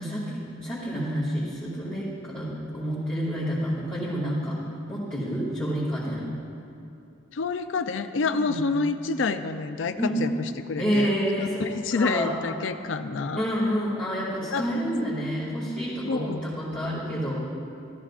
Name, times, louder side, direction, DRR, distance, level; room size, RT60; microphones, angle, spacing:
voice 1, 0.0-4.6 4.9-6.3 8.3-8.6 10.0-10.2 10.8-12.3 13.3-17.3, equal, 5° left, -13 dB, 2.5 m, -29 dB
voice 2, 7.3-10.3 10.7-11.1 11.4-13.4 14.5-14.7 16.1-16.5, left 4 dB, 70° left, 9 dB, 0.5 m, -28 dB
14.0 x 13.5 x 2.5 m, 2.8 s
head